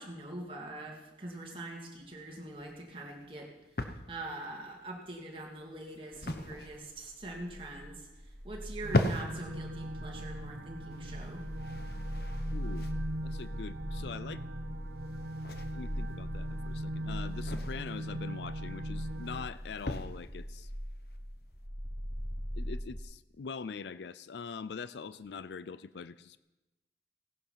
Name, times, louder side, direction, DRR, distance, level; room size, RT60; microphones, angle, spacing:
voice 1, 0.0-3.5 4.1-8.1 8.4-11.4, right 2 dB, 30° right, -1 dB, 2.6 m, -43 dB
sound 1, 1.9-21.7, left 1 dB, 55° left, 1.0 m, -40 dB
sound 2, 6.1-23.0, equal, 5° left, 0.9 m, -41 dB
sound 3, 8.8-19.5, right 1 dB, 85° right, 1.2 m, -41 dB
voice 2, 12.5-12.9 13.2-14.4 15.7-20.7 22.5-26.4, left 5 dB, 75° left, 16 dB, 0.4 m, -43 dB
17.0 x 10.5 x 5.8 m, 1.0 s
head